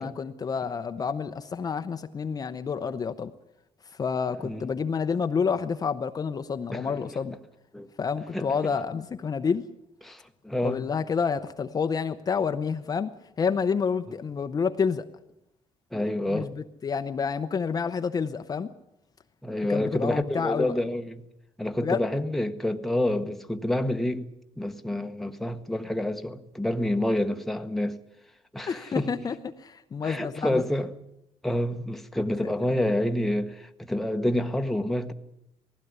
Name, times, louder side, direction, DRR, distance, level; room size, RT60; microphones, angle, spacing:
voice 1, 0.0-3.3 4.0-7.4 8.0-9.7 10.6-13.1 13.4-15.1 16.3-18.7 19.7-20.7 21.8-22.0 28.7-30.6 32.4-32.5, left 6 dB, 30° left, 0.8 m, -29 dB
voice 2, 6.7-7.0 7.7-7.9 8.3-8.7 10.0-10.9 15.9-16.5 19.4-21.2 21.6-24.3 24.6-28.0 28.5-29.1 30.0-30.9 31.4-35.1, left 1 dB, ahead, 1.1 m, -28 dB
19.0 x 16.0 x 9.5 m
cardioid pair, 135°, 12 cm